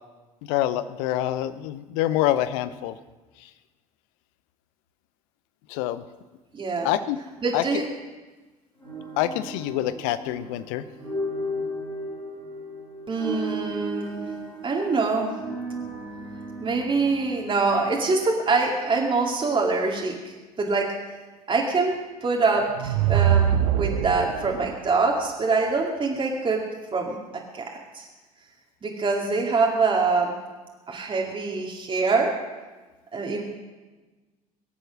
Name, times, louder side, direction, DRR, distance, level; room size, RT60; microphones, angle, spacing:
voice 1, 0.4-2.9 5.7-6.0 6.8-7.2 7.5-7.6 9.2-10.8, left 13 dB, 60° left, 14 dB, 0.8 m, -26 dB
voice 2, 6.5-6.9 7.4-7.9 13.1-14.3 14.6-15.4 16.6-21.0 21.5-26.6 26.9-28.1 28.8-30.3 30.9-32.3 33.1-33.4, right 4 dB, 25° right, -1 dB, 2.3 m, -25 dB
sound 1, 8.8-18.9, right 1 dB, 90° left, 4.1 m, -35 dB
sound 2, 22.6-24.7, right 10 dB, 70° right, 0.7 m, -22 dB
23.0 x 7.9 x 6.1 m, 1.2 s
figure-of-eight pair, 60°, 19 cm